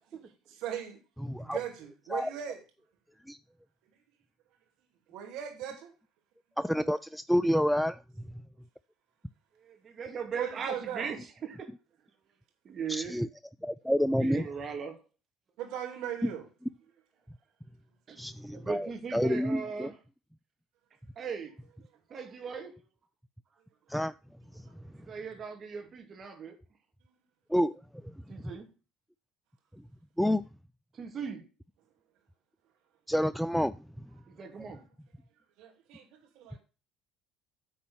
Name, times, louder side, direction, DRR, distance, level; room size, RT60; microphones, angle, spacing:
voice 1, 0.6-1.0 1.4-2.6 5.1-5.9 10.4-11.2 15.6-16.4 22.1-22.2 35.6-36.6, right 10 dB, 70° right, 3 dB, 2.6 m, -38 dB
voice 2, 1.2-1.6 2.1-2.3 3.3-3.4 6.6-8.0 12.9-13.3 13.6-14.5 16.2-16.3 18.2-19.9 23.9-24.1 24.5-24.6 27.5-27.7 28.0-28.1 30.2-30.4 33.1-34.1, equal, ahead, 14 dB, 0.4 m, -29 dB
voice 3, 9.6-11.7 12.6-13.2 14.2-15.0 18.1-18.2 18.5-19.9 21.2-21.5 22.1-22.8 24.8-26.6 28.3-28.7 30.9-31.4 34.3-34.8, right 6 dB, 40° right, 5 dB, 2.3 m, -38 dB
9.4 x 4.3 x 7.0 m, 0.33 s
hypercardioid pair, 70°, 0 cm